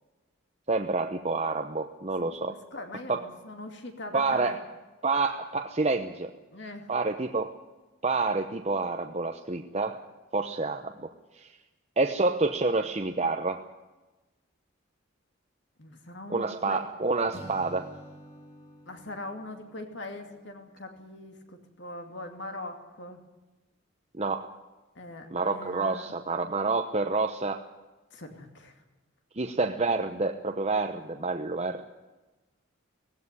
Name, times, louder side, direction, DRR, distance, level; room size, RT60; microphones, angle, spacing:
voice 1, 0.7-2.6 3.1-3.3 4.1-4.6 5.0-6.3 6.9-7.6 8.0-10.0 10.3-11.1 11.4-11.5 12.0-13.6 16.3-17.9 24.2-24.5 25.3-27.6 29.4-31.8, right 3 dB, 30° right, 5 dB, 0.9 m, -28 dB
voice 2, 2.2-4.6 6.5-6.9 15.8-16.8 18.9-23.2 24.9-26.1 28.1-28.8, left 2 dB, 55° left, 5 dB, 2.6 m, -42 dB
Acoustic guitar / Strum, 17.3-20.6, right 1 dB, 30° left, 3.1 m, -49 dB
18.0 x 17.0 x 9.9 m, 1.1 s
head